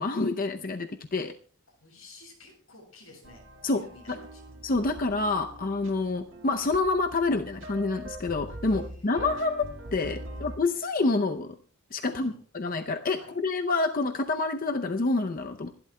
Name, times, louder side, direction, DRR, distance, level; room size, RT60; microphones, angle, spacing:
voice 1, 0.0-1.3 3.6-4.2 4.6-9.7 9.9-11.6 11.9-15.7, left 3 dB, 40° left, 6 dB, 0.6 m, -28 dB
voice 2, 1.7-4.6 5.4-5.6 8.6-9.4 10.2-10.5 12.0-12.4 13.1-13.3, left 2 dB, 85° left, -2 dB, 7.9 m, -53 dB
sound 1, 3.2-10.6, right 1 dB, 65° right, 1.8 m, -43 dB
26.5 x 12.0 x 2.2 m, 0.42 s
head